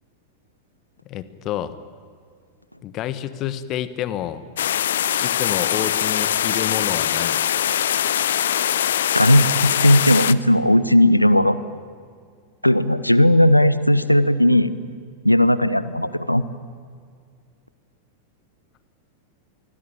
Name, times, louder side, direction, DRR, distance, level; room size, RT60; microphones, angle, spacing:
voice 1, 1.0-1.7 2.8-4.4 5.2-7.4, left 11 dB, 35° left, 14 dB, 1.4 m, -29 dB
sound 1, 4.6-10.3, left 10 dB, 60° left, 0.6 m, -22 dB
voice 2, 9.1-11.6 12.6-14.7 15.2-16.4, left 1 dB, 90° left, 16 dB, 0.9 m, -16 dB
26.5 x 20.5 x 9.2 m, 2.1 s
figure-of-eight pair, 90°, 0 cm